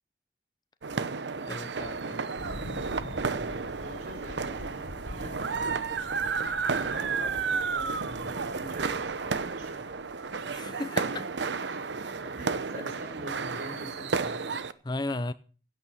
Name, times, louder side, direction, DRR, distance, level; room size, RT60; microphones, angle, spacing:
sound 1, 0.8-14.7, right 5 dB, 90° right, 0.8 m, -32 dB
voice 1, 1.4-2.2 3.1-3.2 10.5-11.3 12.3-12.4 14.8-15.3, left 2 dB, 25° left, 0.5 m, -35 dB
Thunder, 2.4-10.6, left 1 dB, 70° left, 1.4 m, -45 dB
voice 2, 3.3-4.8 5.0-6.5 6.8-9.9 11.7-11.9 12.4-14.6, right 1 dB, 50° right, 5.2 m, -45 dB
16.0 x 8.8 x 5.4 m
head